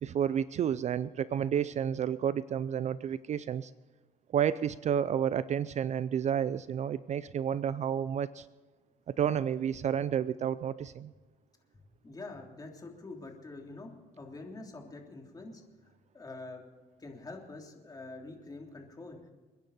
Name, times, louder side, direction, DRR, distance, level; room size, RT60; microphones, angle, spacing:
voice 1, 0.0-3.7 4.3-8.5 9.1-11.1, right 9 dB, 45° right, 16 dB, 0.5 m, -30 dB
voice 2, 12.0-16.6 17.0-19.3, left 2 dB, 20° left, 1 dB, 3.2 m, -46 dB
29.0 x 10.5 x 4.2 m, 1.3 s
cardioid pair, 110°, 17 cm